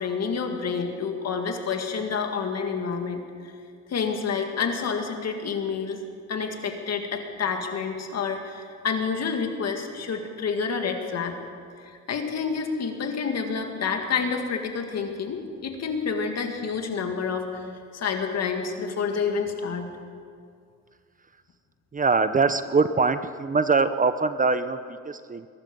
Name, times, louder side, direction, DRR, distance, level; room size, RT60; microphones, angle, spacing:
voice 1, 0.0-3.5 3.9-6.0 6.3-11.4 11.8-19.9, left 5 dB, 60° left, 4 dB, 2.1 m, -29 dB
voice 2, 21.9-25.5, right 4 dB, 25° right, 11 dB, 0.7 m, -23 dB
22.0 x 12.0 x 5.4 m, 2.2 s
cardioid pair, 90°, 30 cm